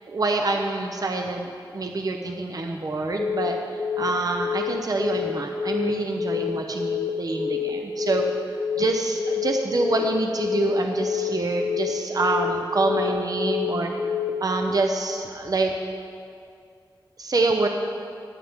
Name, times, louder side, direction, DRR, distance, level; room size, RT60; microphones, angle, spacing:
voice 1, 0.1-8.2 8.8-13.9 14.4-15.7 17.2-17.7, right 2 dB, 50° right, 3 dB, 0.7 m, -26 dB
Telephone, 3.2-3.5 3.8-4.1 4.4-4.7 5.0-5.3 5.6-5.9 6.2-6.5 6.8-7.1 7.4-7.7 8.0-8.3 8.6-8.9 9.2-9.5 9.8-10.1 10.4-10.7 11.0-11.3 11.6-11.9 12.2-12.5 12.8-13.1 13.4-13.7 14.0-14.3, left 7 dB, 40° left, 1.3 m, -27 dB
19.5 x 7.5 x 3.6 m, 2.4 s
wide cardioid pair, 95°, 8 cm